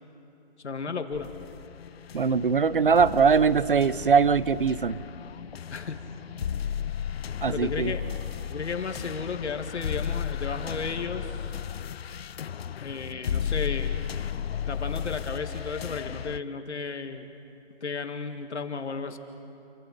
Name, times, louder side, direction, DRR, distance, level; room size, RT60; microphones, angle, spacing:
voice 1, 0.6-1.3 5.7-6.0 7.5-8.0 8.5-11.5 12.8-14.0 14.7-17.3 17.8-19.2, left 4 dB, 80° left, 7 dB, 2.1 m, -34 dB
sound 1, 1.1-16.4, left 8 dB, 65° left, 0.5 m, -34 dB
voice 2, 2.1-5.0 7.4-7.9, right 6 dB, 50° right, 18 dB, 0.6 m, -21 dB
28.5 x 24.0 x 5.3 m, 2.7 s
hypercardioid pair, 180°, 34 cm